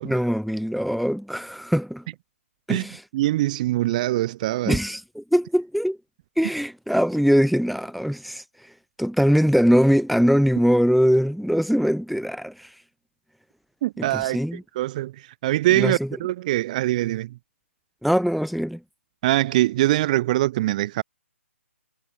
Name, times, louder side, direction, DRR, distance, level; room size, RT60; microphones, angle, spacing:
voice 1, 0.0-2.0 2.7-3.0 4.6-6.0 6.4-8.4 9.0-12.7 14.0-14.6 15.7-16.1 18.0-18.8, equal, ahead, 2.9 m, -22 dB
voice 2, 3.1-4.8 13.8-17.4 19.2-21.0, right 16 dB, 35° right, 1.6 m, -23 dB
hypercardioid pair, 150°, 7 cm